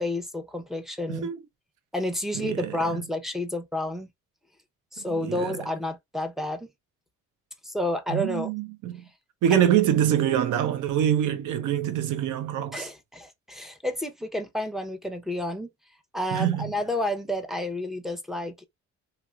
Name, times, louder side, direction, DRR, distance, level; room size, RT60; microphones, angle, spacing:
voice 1, 0.0-1.3 1.9-4.1 4.9-6.7 7.6-8.5 12.7-15.7 16.1-18.7, left 1 dB, ahead, 0.6 m, -30 dB
voice 2, 1.1-1.4 2.3-3.0 5.0-5.7 8.1-9.0 9.4-12.9 16.3-16.7, right 10 dB, 80° right, 0.7 m, -25 dB
3.0 x 2.9 x 2.3 m
cardioid pair, 90°, 30 cm